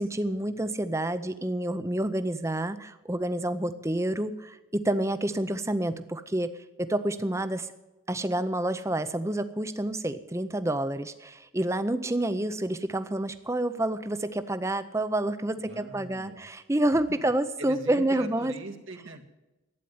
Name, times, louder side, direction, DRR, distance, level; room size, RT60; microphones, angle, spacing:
voice 1, 0.0-6.5 6.8-7.7 8.1-18.5, right 1 dB, 15° right, 11 dB, 0.7 m, -28 dB
voice 2, 15.5-16.4 17.6-19.3, right 2 dB, 75° right, 3 dB, 1.8 m, -42 dB
12.0 x 9.3 x 9.4 m, 1.0 s
head